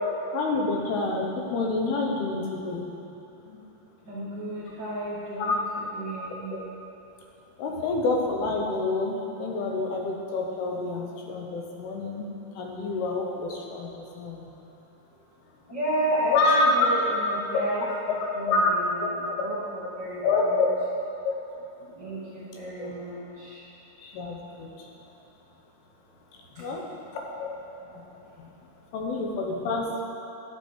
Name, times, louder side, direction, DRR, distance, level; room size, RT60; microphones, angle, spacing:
voice 1, 0.3-2.8 3.5-3.6 5.4-5.6 7.6-12.3 12.6-14.5 16.3-16.7 17.5-17.7 18.1-18.7 19.0-19.5 20.2-20.7 21.2-21.3 22.8-22.9 24.0-24.7 26.6-26.8 27.1-27.6 27.9-28.0 28.4-28.5 28.9-30.0, left 3 dB, 85° left, 0 dB, 3.0 m, -27 dB
voice 2, 4.1-5.6 5.9-6.5 15.7-17.8 18.3-19.1 19.4-20.6 22.0-23.6, right 1 dB, 45° right, -10 dB, 1.5 m, -32 dB
10.5 x 7.8 x 4.4 m, 2.8 s
omnidirectional pair, 4.5 m